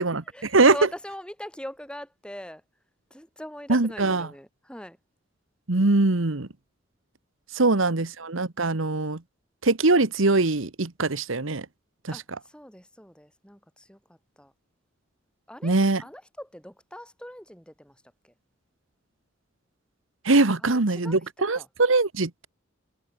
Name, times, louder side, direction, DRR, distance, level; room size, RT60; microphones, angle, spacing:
voice 1, 0.3-2.6 3.1-5.0 12.1-14.5 15.5-17.9 18.2-18.3 20.6-21.2 21.6-21.7, equal, 5° left, 7.0 m, -41 dB
voice 2, 3.7-4.3 5.7-6.5 7.5-9.2 9.6-11.6 15.6-16.0 20.2-22.5, right 3 dB, 80° right, 1.4 m, -22 dB
head